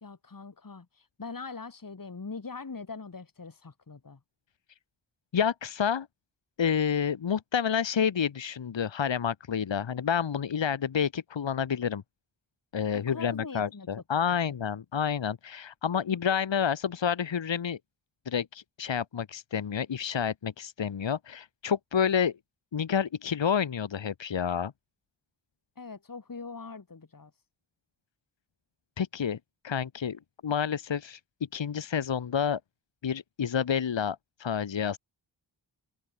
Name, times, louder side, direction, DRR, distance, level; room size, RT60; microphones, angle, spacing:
voice 1, 0.0-4.2 12.9-13.9 14.3-14.4 25.8-27.3, left 4 dB, 45° left, 2.2 m, -42 dB
voice 2, 5.3-6.1 6.6-12.0 12.7-17.8 18.3-22.3 22.7-24.7 29.0-29.4 29.6-31.2 31.5-32.6 33.0-35.0, left 7 dB, 70° left, 1.1 m, -29 dB
wide cardioid pair, 75°, 46 cm